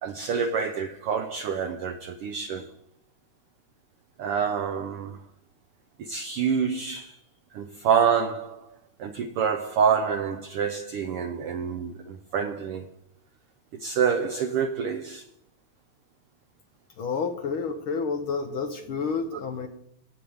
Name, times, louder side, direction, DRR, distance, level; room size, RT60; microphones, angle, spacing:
voice 1, 0.0-2.7 4.2-5.2 6.0-7.2 7.5-8.7 9.0-12.8 13.8-15.2 19.3-19.4, right 7 dB, 90° right, 1.2 m, -27 dB
voice 2, 17.0-19.7, left 5 dB, 70° left, 1.2 m, -29 dB
16.5 x 9.6 x 3.5 m
omnidirectional pair, 3.4 m